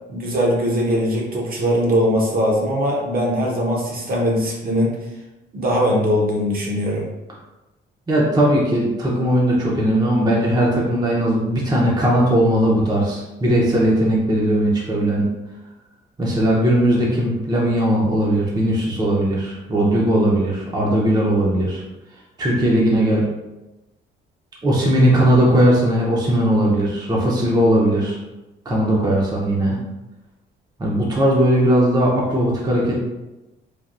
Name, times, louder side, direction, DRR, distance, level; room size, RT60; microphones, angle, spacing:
voice 1, 0.1-4.9 5.5-7.1, equal, 50° right, -2 dB, 0.8 m, -20 dB
voice 2, 8.1-15.3 16.2-21.8 22.4-23.3 24.6-28.2 28.7-29.8 30.8-32.9, right 1 dB, 20° right, -4 dB, 0.6 m, -18 dB
3.3 x 2.2 x 2.5 m, 1.0 s
cardioid pair, 90°, 20 cm